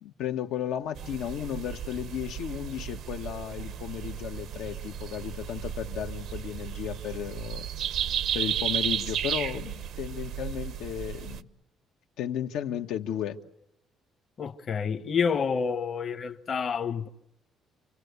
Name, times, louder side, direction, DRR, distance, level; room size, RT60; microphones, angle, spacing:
voice 1, 0.0-7.7 8.3-11.5 12.2-13.4, left 10 dB, 85° left, 1.5 m, -34 dB
sound 1, 1.0-11.4, right 10 dB, 65° right, 1.0 m, -34 dB
voice 2, 14.4-17.1, left 6 dB, 40° left, 1.1 m, -28 dB
29.0 x 25.0 x 8.2 m
cardioid pair, 135°, 0 cm